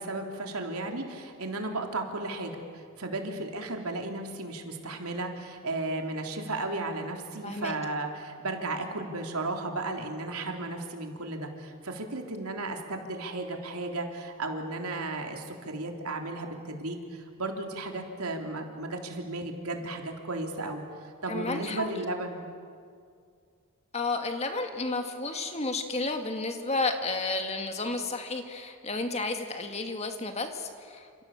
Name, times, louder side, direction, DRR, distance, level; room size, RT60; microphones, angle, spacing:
voice 1, 0.0-20.8 21.2-22.4, right 2 dB, 80° right, 3 dB, 3.5 m, -34 dB
voice 2, 7.4-7.8 21.3-22.0 23.9-31.2, left 3 dB, 30° left, 5 dB, 2.2 m, -32 dB
29.0 x 28.0 x 7.3 m, 2.2 s
head